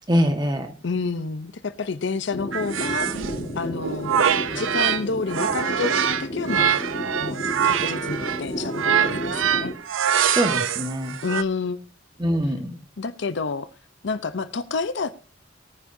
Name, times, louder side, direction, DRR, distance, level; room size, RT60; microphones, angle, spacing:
voice 1, 0.1-0.7 10.3-11.2 12.2-12.8, equal, 20° right, 1.5 m, -23 dB
voice 2, 0.8-3.3 3.5-4.3 4.5-6.7 7.2-9.7 11.2-11.8 13.0-13.7 14.0-15.2, left 4 dB, 65° left, 0.7 m, -29 dB
sound 1, 2.3-9.7, equal, 40° left, 1.8 m, -32 dB
sound 2, 2.5-5.0 5.3-11.4, right 8 dB, 85° right, 0.6 m, -24 dB
18.5 x 9.5 x 2.7 m
head